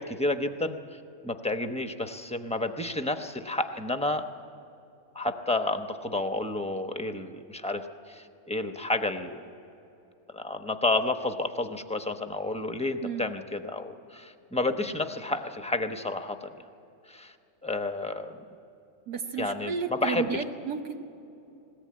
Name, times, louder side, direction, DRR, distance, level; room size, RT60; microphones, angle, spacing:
voice 1, 0.0-4.2 5.1-9.4 10.3-16.5 17.1-17.3 17.6-18.4 19.4-20.3, left 2 dB, 5° left, 6 dB, 0.5 m, -30 dB
voice 2, 19.1-21.0, right 6 dB, 75° right, 4 dB, 1.9 m, -32 dB
20.5 x 17.5 x 8.6 m, 2.8 s
omnidirectional pair, 1.8 m